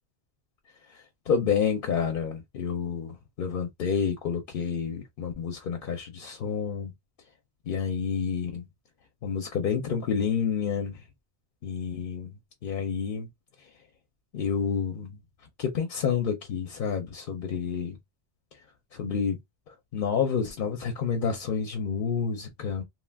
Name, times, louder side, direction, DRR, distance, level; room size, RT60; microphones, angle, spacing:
voice 1, 0.9-6.9 7.7-8.7 9.2-11.0 11.6-12.3 12.6-13.3 14.3-15.2 15.6-18.0 18.9-19.4 19.7-22.8, left 6 dB, 55° left, 0.7 m, -29 dB
2.3 x 2.1 x 3.3 m
omnidirectional pair, 1.2 m